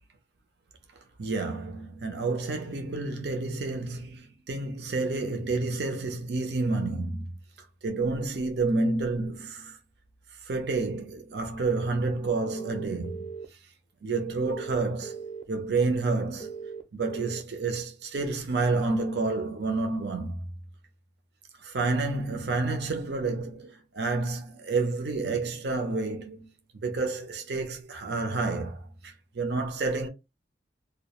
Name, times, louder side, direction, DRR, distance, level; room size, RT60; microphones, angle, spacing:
voice 1, 1.2-7.4 7.8-9.8 10.4-13.3 14.0-16.5 16.9-20.5 21.6-26.5 26.7-30.1, right 3 dB, 70° right, 0.6 m, -29 dB
sound 1, 12.5-13.4 14.4-15.4 16.4-17.4, right 5 dB, 25° left, 0.4 m, -39 dB
2.3 x 2.1 x 2.8 m
head